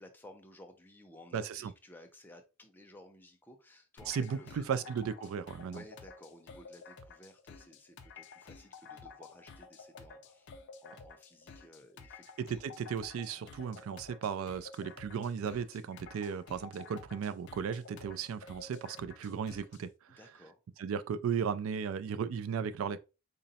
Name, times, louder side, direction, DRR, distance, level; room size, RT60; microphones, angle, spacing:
voice 1, 0.0-4.9 5.7-10.5 10.8-12.3 20.2-20.6, left 1 dB, 10° left, 0.5 m, -55 dB
voice 2, 1.3-1.7 4.1-5.8 12.4-20.2 20.8-23.0, right 7 dB, 75° right, 0.3 m, -36 dB
sound 1, 4.0-19.9, left 5 dB, 60° left, 0.5 m, -52 dB
3.8 x 2.0 x 4.0 m
head